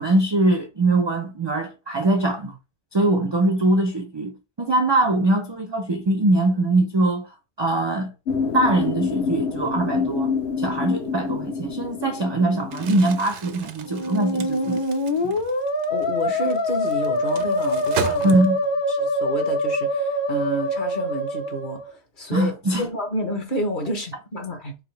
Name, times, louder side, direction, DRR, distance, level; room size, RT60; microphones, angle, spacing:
voice 1, 0.0-2.6 2.9-4.3 4.6-7.3 7.6-8.1 8.5-10.3 10.6-14.8 15.2-15.3 18.2-18.6 22.3-22.9, right 2 dB, 45° right, 0.3 m, -22 dB
sound 1, 8.3-13.2, left 5 dB, 70° left, 1.0 m, -27 dB
Crumpling crinkling, 12.6-18.8, right 8 dB, 90° right, 0.9 m, -35 dB
Musical instrument, 13.8-21.9, left 1 dB, 30° left, 0.6 m, -24 dB
voice 2, 15.9-18.3 18.9-24.8, equal, 50° left, 1.1 m, -30 dB
4.1 x 2.6 x 3.2 m
omnidirectional pair, 1.1 m